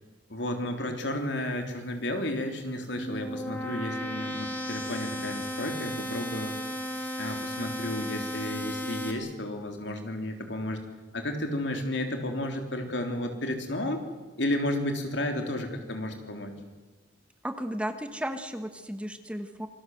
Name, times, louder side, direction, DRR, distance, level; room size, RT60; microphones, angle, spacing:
voice 1, 0.3-6.6 7.2-10.8 11.1-14.0 14.4-16.6, left 1 dB, 70° left, 4 dB, 3.5 m, -32 dB
sound 1, 2.6-9.1, equal, 10° left, 3.0 m, -35 dB
voice 2, 17.4-19.7, equal, 5° right, 7 dB, 1.2 m, -34 dB
27.0 x 20.0 x 7.9 m, 1.3 s
head